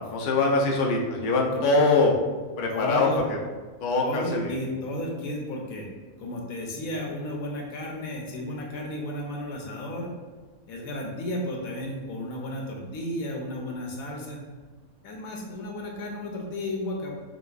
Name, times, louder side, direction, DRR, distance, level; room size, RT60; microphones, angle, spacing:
voice 1, 0.0-2.2 2.6-3.1 3.8-4.5, left 3 dB, 65° left, -1 dB, 0.5 m, -23 dB
voice 2, 2.7-3.2 4.0-5.9 6.2-10.1 10.7-14.4 15.0-17.1, left 1 dB, 80° left, 0 dB, 1.1 m, -33 dB
5.0 x 2.2 x 2.3 m, 1.4 s
omnidirectional pair, 1.5 m